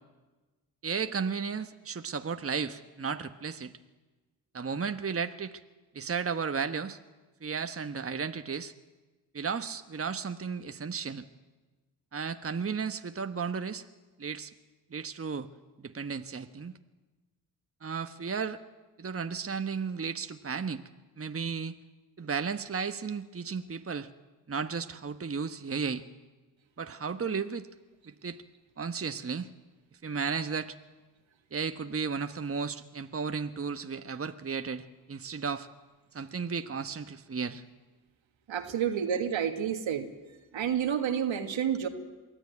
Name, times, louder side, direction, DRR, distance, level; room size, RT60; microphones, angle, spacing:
voice 1, 0.8-3.7 4.5-5.6 5.9-7.0 7.4-8.7 9.3-11.2 12.1-13.8 14.2-14.5 14.9-15.5 15.8-16.7 17.8-18.6 19.0-20.8 21.2-21.8 22.2-24.1 24.5-26.0 26.8-27.7 28.1-28.4 28.8-29.5 30.0-30.7 31.5-35.7 36.1-37.6, right 5 dB, 30° right, 9 dB, 1.2 m, -34 dB
voice 2, 38.5-40.1 40.5-41.9, right 8 dB, 70° right, 6 dB, 1.9 m, -29 dB
22.5 x 14.0 x 9.4 m, 1.2 s
supercardioid pair, 40°, 48 cm